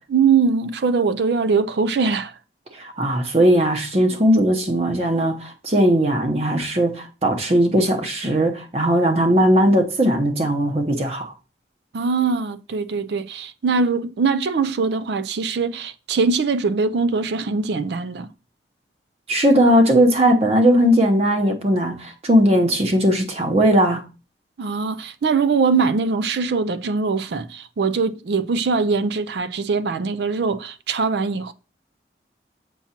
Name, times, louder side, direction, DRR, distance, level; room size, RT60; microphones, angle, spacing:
voice 1, 0.1-2.3 11.9-18.3 24.6-31.5, right 5 dB, 75° right, 0.4 m, -22 dB
voice 2, 2.8-11.3 19.3-24.0, equal, 35° right, 0.8 m, -18 dB
7.1 x 5.7 x 2.9 m
head